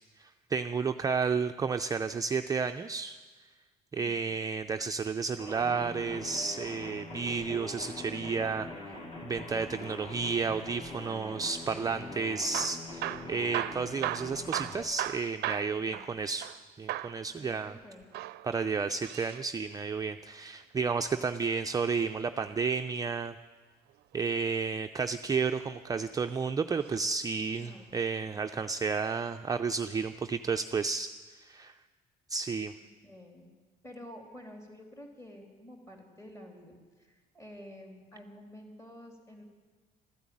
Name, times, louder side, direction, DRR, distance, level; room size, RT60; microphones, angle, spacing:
voice 1, 0.2-3.2 3.9-8.9 9.2-16.5 16.8-17.8 18.4-23.4 24.1-31.1 31.4-31.8 32.3-32.7, right 5 dB, 20° right, 7 dB, 0.4 m, -32 dB
sound 1, 5.4-14.8, left 2 dB, 35° left, 3.4 m, -43 dB
Hammer / Drill, 12.4-16.6 16.9-17.2 18.0-19.4 21.2-22.4 24.1-24.6 25.3-26.1 26.8-27.1 27.4-27.5 28.1-28.2, right 15 dB, 75° right, 0.5 m, -37 dB
voice 2, 17.3-18.1 27.6-27.9 33.0-33.5 33.8-39.4, left 1 dB, 15° left, 1 dB, 3.5 m, -50 dB
13.0 x 11.5 x 8.5 m, 1.4 s
cardioid pair, 110°, 17 cm